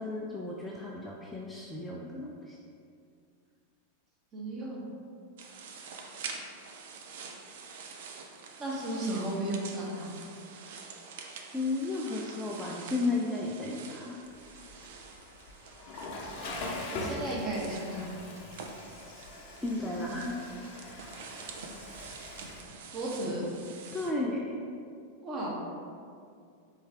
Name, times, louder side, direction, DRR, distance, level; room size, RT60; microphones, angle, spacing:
voice 1, 0.0-2.6 11.5-14.2 19.6-20.4 20.8-21.0 23.9-24.6, left 2 dB, 5° left, -4 dB, 0.4 m, -34 dB
voice 2, 4.3-4.9 8.6-10.2 16.9-18.1 20.1-20.2 21.1-21.3 22.9-23.5 25.2-25.6, right 1 dB, 25° right, -5 dB, 1.1 m, -34 dB
sound 1, 5.4-24.1, right 5 dB, 55° right, 0.4 m, -47 dB
Water / Toilet flush, 14.2-22.6, left 2 dB, 45° left, 0.7 m, -42 dB
4.4 x 3.2 x 3.5 m, 2.3 s
figure-of-eight pair, 90°, 0 cm